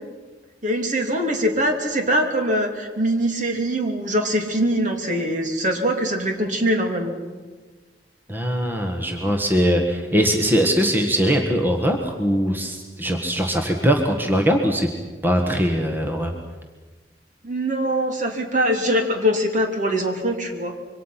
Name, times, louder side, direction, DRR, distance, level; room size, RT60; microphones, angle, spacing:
voice 1, 0.6-7.1 17.4-20.8, equal, 45° right, 4 dB, 2.8 m, -22 dB
voice 2, 8.3-14.9 15.2-16.3, equal, 10° right, 3 dB, 1.6 m, -21 dB
26.0 x 24.0 x 5.9 m, 1.3 s
head